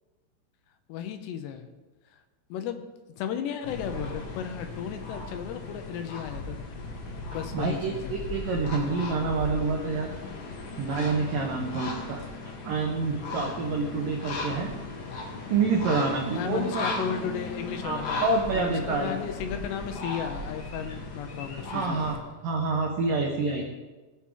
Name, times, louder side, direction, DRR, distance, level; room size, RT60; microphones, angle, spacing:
voice 1, 0.9-1.7 2.5-2.8 3.2-6.6 7.3-8.1 16.4-18.2 18.5-22.0, left 8 dB, 75° left, 7 dB, 2.7 m, -34 dB
sound 1, 3.6-22.2, left 3 dB, 55° left, 3.1 m, -37 dB
voice 2, 7.5-10.1 10.8-12.3 12.7-14.7 15.5-16.8 17.8-19.2 21.7-22.2 22.4-23.6, right 4 dB, 85° right, 1 dB, 1.9 m, -27 dB
19.0 x 7.4 x 3.8 m, 1.2 s
omnidirectional pair, 5.4 m